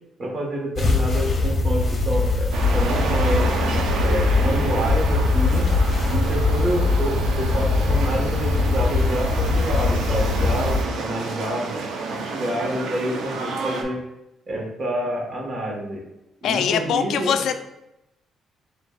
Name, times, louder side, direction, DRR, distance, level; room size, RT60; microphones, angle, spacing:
voice 1, 0.2-3.6 4.0-5.8 6.1-11.7 12.1-14.0 14.5-16.0 16.4-17.5, right 1 dB, 45° right, 0 dB, 1.3 m, -28 dB
sound 1, 0.8-10.8, left 3 dB, 40° left, 1.0 m, -21 dB
sound 2, 2.5-13.8, right 4 dB, 80° right, 0.6 m, -30 dB
voice 2, 16.4-17.6, left 8 dB, 75° left, 8 dB, 0.3 m, -22 dB
7.0 x 2.5 x 2.3 m, 0.89 s
cardioid pair, 90°, 0 cm